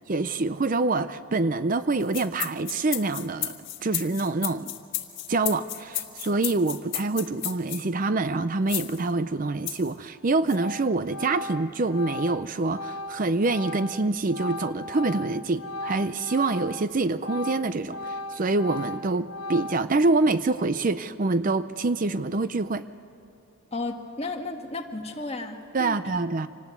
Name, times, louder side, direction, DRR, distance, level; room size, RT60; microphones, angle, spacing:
voice 1, 0.1-3.6 3.8-4.7 5.3-22.8 25.7-26.5, right 3 dB, 40° right, 12 dB, 0.5 m, -26 dB
sound 1, 2.0-7.8 8.7-9.0 9.7-9.9 10.5-10.6, left 14 dB, 55° left, 1.7 m, -32 dB
Organ, 10.0-10.2 10.5-16.9 17.2-20.1, left 1 dB, 70° left, 0.8 m, -37 dB
voice 2, 23.7-26.0, left 2 dB, 30° left, 4 dB, 1.6 m, -33 dB
26.0 x 19.0 x 8.2 m, 2.8 s
head